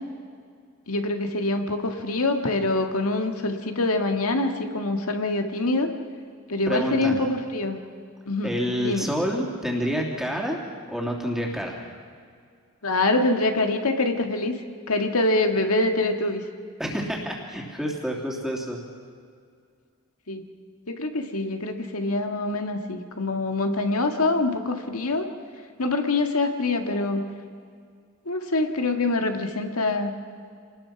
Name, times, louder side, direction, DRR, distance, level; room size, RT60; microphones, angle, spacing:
voice 1, 0.9-5.9 6.5-7.8 8.3-9.1 12.8-14.6 14.9-16.4 20.3-20.4 20.9-25.3 25.8-27.2 28.3-30.1, left 2 dB, 90° left, 5 dB, 1.8 m, -25 dB
voice 2, 6.7-7.1 8.4-10.6 10.9-11.7 16.8-18.8, equal, ahead, -1 dB, 3.0 m, -28 dB
27.5 x 20.0 x 5.9 m, 2.2 s
head